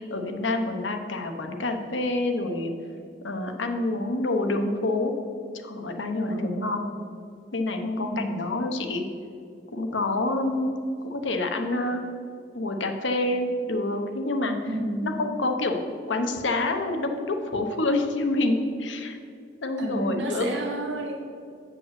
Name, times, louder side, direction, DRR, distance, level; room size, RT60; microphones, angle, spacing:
voice 1, 0.0-2.7 3.2-5.1 5.6-6.9 7.5-9.0 9.7-10.7 11.0-12.0 12.5-14.6 15.0-19.2 19.6-20.5, left 2 dB, 80° left, 5 dB, 0.9 m, -27 dB
voice 2, 14.7-15.1 19.8-21.2, right 1 dB, 75° right, -1 dB, 1.8 m, -30 dB
7.5 x 5.3 x 7.5 m, 2.4 s
head